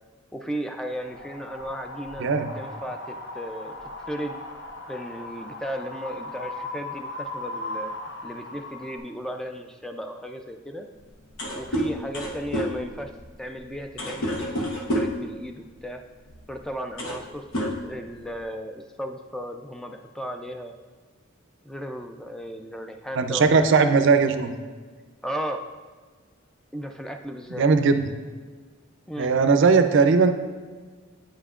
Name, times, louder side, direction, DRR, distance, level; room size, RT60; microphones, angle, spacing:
voice 1, 0.3-2.3 2.6-3.8 4.1-4.4 4.9-7.9 8.2-10.9 11.5-13.1 13.4-16.0 16.5-20.7 21.6-24.0 25.2-25.6 26.7-27.7 29.1-29.4, equal, 5° left, 4 dB, 0.3 m, -35 dB
Wind, 0.9-9.0, left 2 dB, 55° left, 0.8 m, -38 dB
sound 1, 11.0-11.1 11.3-15.3 16.3-16.4 16.8-17.3 17.5-18.4, equal, 75° left, 1.0 m, -29 dB
voice 2, 23.2-24.5 27.5-28.0 29.2-30.3, right 4 dB, 60° right, 8 dB, 0.4 m, -19 dB
8.7 x 5.6 x 2.4 m, 1.5 s
head